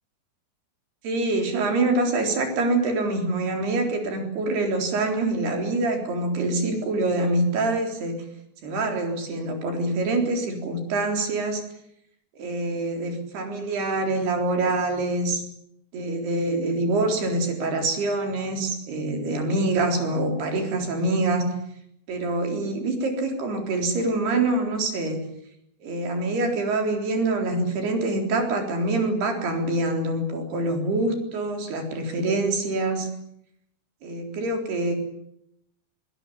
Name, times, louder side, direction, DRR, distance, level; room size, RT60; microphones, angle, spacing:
voice 1, 1.0-8.2 8.6-11.6 12.4-15.4 15.9-21.5 22.1-25.2 25.8-33.1 34.0-34.9, right 2 dB, 65° right, 4 dB, 5.9 m, -25 dB
22.0 x 20.0 x 9.9 m, 0.76 s
omnidirectional pair, 5.0 m